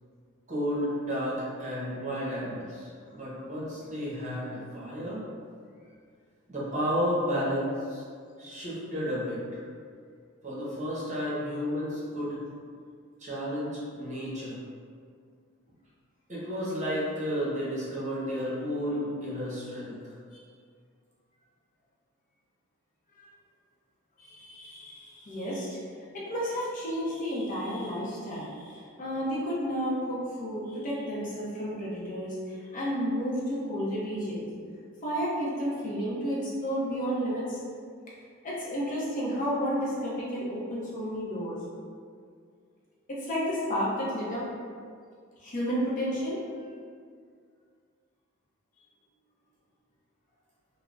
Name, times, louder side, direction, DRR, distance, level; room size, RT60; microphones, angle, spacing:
voice 1, 0.5-5.2 6.5-8.0 8.4-9.6 10.4-12.4 13.2-14.6 16.3-20.1, equal, 35° right, -8 dB, 0.8 m, -32 dB
voice 2, 24.2-25.8 26.1-34.5 35.0-37.6 38.4-41.6 43.1-44.5 45.4-46.4, equal, 40° left, -7 dB, 0.6 m, -31 dB
3.6 x 2.0 x 2.3 m, 2.1 s
head